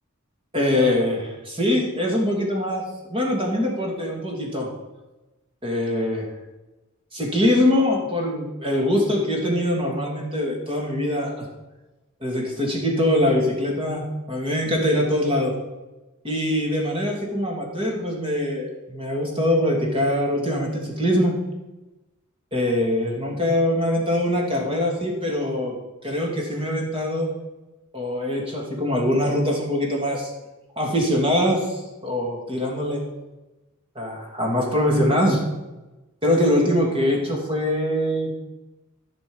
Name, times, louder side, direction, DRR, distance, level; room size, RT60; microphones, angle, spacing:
voice 1, 0.5-4.7 5.6-6.3 7.1-11.5 12.2-15.5 16.2-21.3 22.5-25.7 26.0-27.3 27.9-30.3 30.8-33.0 33.9-35.4 36.2-38.4, left 1 dB, 25° right, -1 dB, 2.8 m, -23 dB
14.5 x 6.2 x 5.5 m, 1.1 s
head